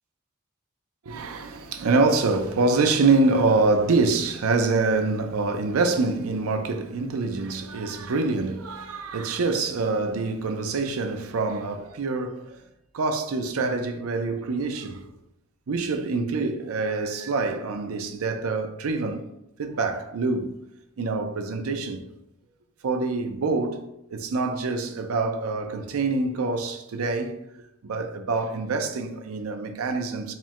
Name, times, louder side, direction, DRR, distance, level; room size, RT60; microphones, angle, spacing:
voice 1, 1.1-12.6 12.9-15.0 15.7-19.3 19.6-20.6 21.0-22.1 22.8-27.4 27.8-30.3, right 3 dB, 85° right, 0.5 m, -25 dB
4.4 x 2.1 x 3.6 m
head